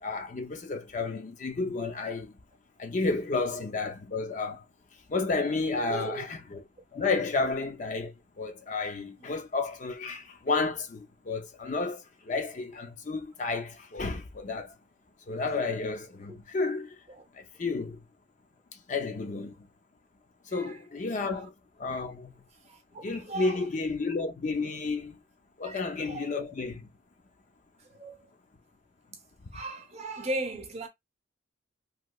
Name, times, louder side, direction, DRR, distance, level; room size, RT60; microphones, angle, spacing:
voice 1, 0.0-2.4 2.8-4.6 5.1-6.6 6.9-14.7 15.3-17.0 17.3-18.0 18.9-19.6 20.5-21.5 21.8-22.3 23.0-25.2 25.6-26.9, left 3 dB, 35° left, 0.4 m, -31 dB
voice 2, 5.8-6.2 16.3-16.4 17.1-17.3 20.5-20.9 21.3-21.5 22.6-23.7 25.6-26.3 27.8-28.2 29.5-30.9, right 2 dB, 30° right, 0.6 m, -38 dB
3.0 x 2.7 x 2.2 m
head